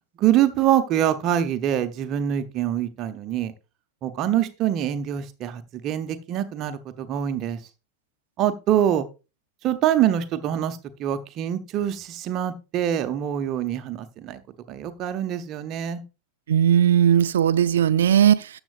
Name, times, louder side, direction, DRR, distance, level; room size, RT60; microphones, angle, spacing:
voice 1, 0.2-3.5 4.0-7.6 8.4-9.1 9.6-14.4 14.7-16.0, right 11 dB, 35° right, 0.8 m, -24 dB
voice 2, 16.5-18.6, right 9 dB, 60° right, 0.5 m, -18 dB
13.5 x 7.9 x 2.5 m
figure-of-eight pair, 90°, 0 cm